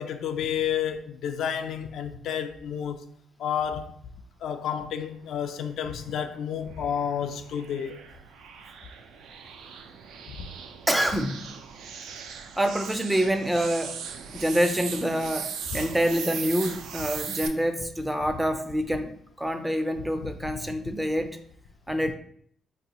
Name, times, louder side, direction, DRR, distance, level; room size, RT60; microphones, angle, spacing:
voice 1, 0.0-3.0 3.4-3.9 4.4-8.0 10.3-10.5 15.7-15.8 20.2-20.5, left 8 dB, 75° left, 0.3 m, -31 dB
sound 1, 5.9-17.5, right 7 dB, 80° right, 0.3 m, -39 dB
voice 2, 10.9-11.5 12.6-14.0 14.3-19.1 19.4-21.4 21.9-22.1, equal, 10° right, 0.4 m, -26 dB
2.7 x 2.3 x 3.9 m
cardioid pair, 90°, 0 cm